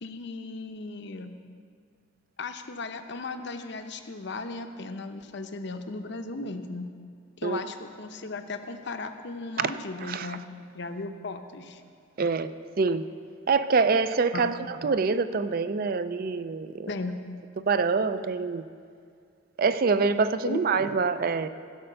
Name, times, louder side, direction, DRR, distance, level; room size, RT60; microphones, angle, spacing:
voice 1, 0.0-1.4 2.4-6.9 7.4-10.4 10.7-11.8 14.3-14.5 16.9-17.2 20.4-20.6, left 3 dB, 55° left, 7 dB, 0.7 m, -36 dB
voice 2, 12.2-12.5 12.8-13.0 13.5-16.9 17.6-18.6 19.6-21.5, right 4 dB, 45° right, 12 dB, 0.4 m, -25 dB
15.5 x 5.5 x 6.7 m, 2.2 s
head